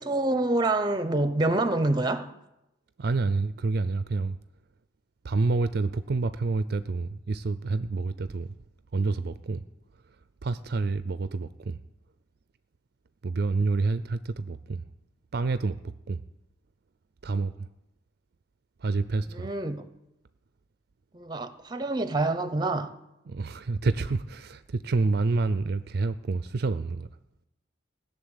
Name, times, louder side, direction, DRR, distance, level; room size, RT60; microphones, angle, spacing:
voice 1, 0.0-2.3 19.3-19.8 21.1-22.9, right 2 dB, 25° right, 0.8 m, -26 dB
voice 2, 3.0-4.4 5.2-8.5 8.9-9.6 10.4-11.8 13.2-14.8 15.3-15.8 16.1-16.2 17.2-17.7 18.8-19.5 23.3-27.1, right 3 dB, 55° right, 0.5 m, -28 dB
16.5 x 7.0 x 9.7 m
head